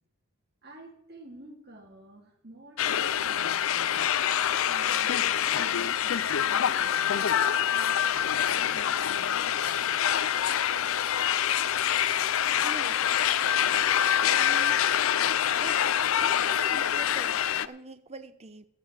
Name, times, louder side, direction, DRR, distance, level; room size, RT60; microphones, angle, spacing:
voice 1, 0.6-4.0 4.6-10.0, right 1 dB, 45° right, 2 dB, 2.7 m, -51 dB
sound 1, 2.8-17.7, left 10 dB, 65° left, 0.5 m, -26 dB
voice 2, 12.6-13.0 14.2-14.8 15.6-15.8 16.2-18.7, right 3 dB, 30° right, 10 dB, 0.8 m, -44 dB
13.0 x 8.4 x 6.5 m, 0.71 s
head